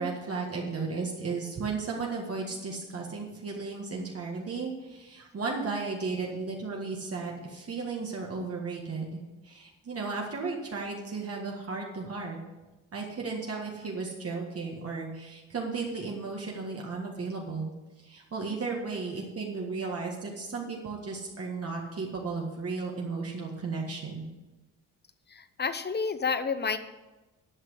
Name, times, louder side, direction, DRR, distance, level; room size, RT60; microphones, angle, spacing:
voice 1, 0.0-9.2 9.4-12.4 12.9-17.7 18.0-24.2, right 4 dB, 50° right, -1 dB, 1.8 m, -34 dB
voice 2, 25.3-26.8, left 5 dB, 30° left, 11 dB, 0.8 m, -30 dB
11.0 x 6.0 x 8.1 m, 1.1 s
cardioid pair, 100°, 31 cm